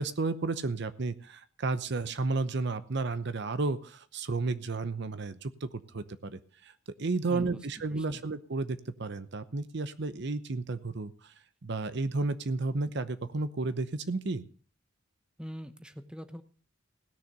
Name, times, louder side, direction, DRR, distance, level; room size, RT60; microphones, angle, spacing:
voice 1, 0.0-6.7 7.0-11.3 11.6-14.4, right 3 dB, 60° right, 13 dB, 0.8 m, -32 dB
voice 2, 7.3-8.2 15.4-16.4, equal, 5° right, 9 dB, 0.9 m, -43 dB
17.0 x 6.6 x 6.6 m, 0.43 s
head